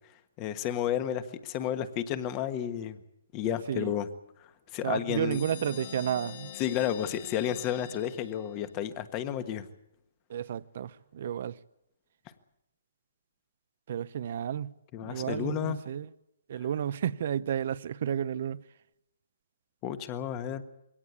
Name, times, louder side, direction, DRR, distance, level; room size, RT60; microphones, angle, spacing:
voice 1, 0.4-3.0 3.3-4.1 4.7-5.4 6.6-9.7 14.9-15.8 19.8-20.6, left 10 dB, 25° left, 1.4 m, -31 dB
voice 2, 4.8-6.5 10.3-11.6 13.9-14.7 15.0-16.1 16.5-18.6, right 9 dB, 50° right, 0.7 m, -32 dB
sound 1, 5.3-8.9, left 10 dB, 45° left, 1.9 m, -45 dB
22.0 x 17.5 x 8.4 m
hypercardioid pair, 150°, 0 cm